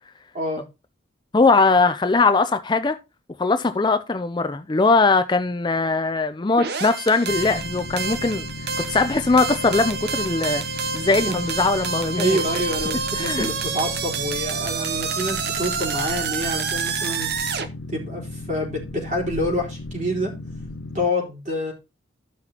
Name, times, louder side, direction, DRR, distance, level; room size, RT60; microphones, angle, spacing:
voice 1, 1.3-3.0 3.4-8.5 8.9-10.6 10.9-12.4 13.2-13.5, left 3 dB, 20° left, 0.4 m, -20 dB
sound 1, 6.6-17.7, right 5 dB, 55° right, 0.8 m, -28 dB
Boat Water vehicle, 7.3-21.1, left 2 dB, 75° left, 0.8 m, -36 dB
voice 2, 12.2-17.3 17.9-20.3 20.9-21.7, equal, 40° right, 3.8 m, -27 dB
14.0 x 5.9 x 2.9 m
head